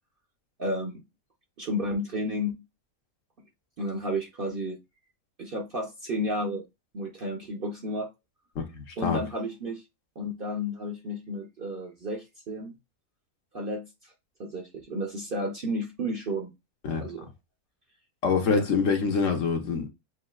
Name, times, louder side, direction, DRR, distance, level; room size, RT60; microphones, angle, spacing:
voice 1, 0.6-1.0 1.6-2.6 3.8-4.8 5.4-6.6 6.9-8.1 9.0-9.8 10.2-12.8 13.5-14.1 14.4-16.5 17.0-17.3 18.5-18.7, equal, 45° right, 0.8 m, -32 dB
voice 2, 8.6-9.2 16.8-17.0 18.2-19.9, left 5 dB, 60° left, 1.3 m, -25 dB
7.5 x 2.7 x 2.4 m
omnidirectional pair, 1.6 m